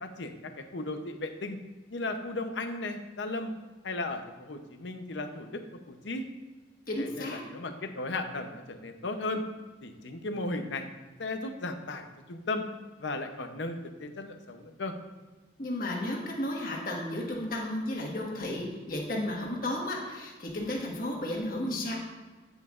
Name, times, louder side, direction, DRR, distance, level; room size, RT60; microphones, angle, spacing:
voice 1, 0.0-1.6 1.9-3.5 3.8-5.6 5.9-6.2 7.0-9.4 9.8-10.8 11.2-12.6 13.0-14.9, left 2 dB, 75° left, 6 dB, 0.8 m, -35 dB
voice 2, 6.9-7.4 15.6-22.0, left 1 dB, 50° left, -1 dB, 1.6 m, -33 dB
9.0 x 7.9 x 2.5 m, 1.2 s
head